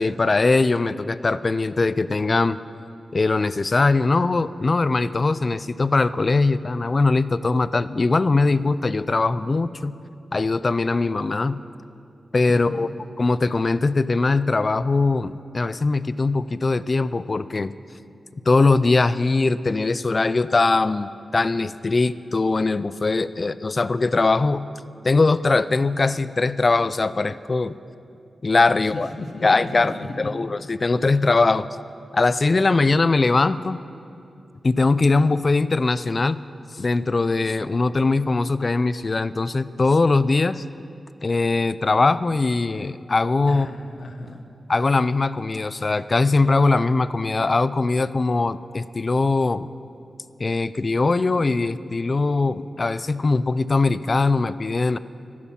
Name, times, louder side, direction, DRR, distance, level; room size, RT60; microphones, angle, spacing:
voice 1, 0.0-2.6 3.1-9.9 10.3-11.6 12.3-12.9 13.2-17.7 18.5-24.7 25.0-27.7 28.4-29.1 29.4-31.7 32.1-33.8 34.6-36.4 36.7-40.6 41.2-43.7 44.7-49.7 50.4-55.0, left 3 dB, 35° left, 15 dB, 0.4 m, -21 dB
voice 2, 12.5-12.9 28.9-30.3 43.5-44.4, left 2 dB, 65° left, 4 dB, 1.3 m, -34 dB
14.0 x 12.5 x 5.7 m, 2.6 s
wide cardioid pair, 115°, 0 cm